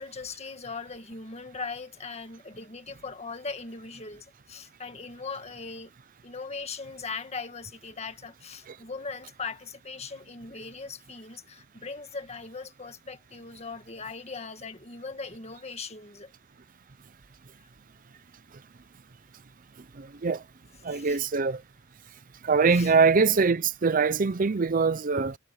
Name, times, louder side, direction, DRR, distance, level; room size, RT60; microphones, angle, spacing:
voice 1, 0.0-5.9 6.2-16.3 20.9-21.2 22.7-22.9, left 4 dB, 35° left, 1.8 m, -39 dB
voice 2, 20.0-20.4 20.8-21.6 22.4-25.4, right 4 dB, 45° right, 0.6 m, -23 dB
head